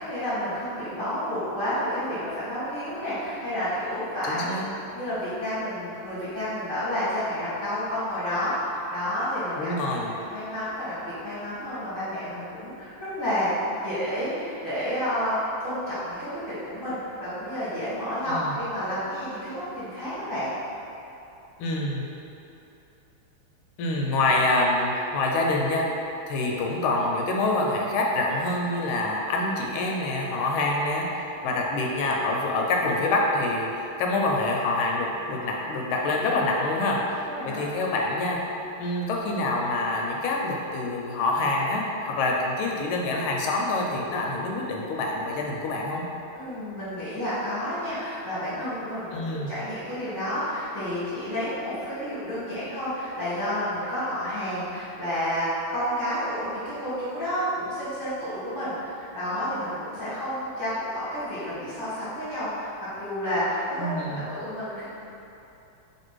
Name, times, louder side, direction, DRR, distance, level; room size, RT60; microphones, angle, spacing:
voice 1, 0.0-4.5 4.9-9.7 10.1-13.5 13.8-20.5 31.3-31.5 37.2-37.6 46.3-62.7 63.0-64.8, equal, 15° right, -12 dB, 0.8 m, -30 dB
voice 2, 4.3-4.6 9.6-10.1 18.3-18.5 21.6-22.0 23.8-25.9 26.3-38.4 38.8-46.0 49.1-49.5 63.8-64.2, left 2 dB, 80° left, -1 dB, 1.4 m, -26 dB
3.3 x 2.8 x 4.5 m, 2.9 s
omnidirectional pair, 2.3 m